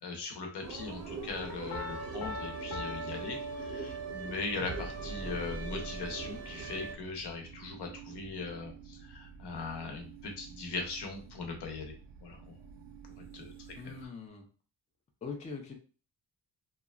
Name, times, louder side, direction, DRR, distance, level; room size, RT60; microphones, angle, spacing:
voice 1, 0.0-11.9 12.2-12.5 13.2-13.5 13.8-14.1, left 4 dB, 70° left, 3 dB, 0.8 m, -40 dB
sound 1, 0.6-7.0, right 4 dB, 40° right, 0.6 m, -40 dB
sound 2, 0.9-14.1, right 7 dB, 85° right, 0.5 m, -51 dB
Piano, 1.7-4.3, left 3 dB, 40° left, 0.7 m, -42 dB
voice 2, 13.8-14.5 15.2-15.7, left 5 dB, 20° left, 2 dB, 0.3 m, -42 dB
2.8 x 2.3 x 2.3 m, 0.37 s
wide cardioid pair, 160°, 41 cm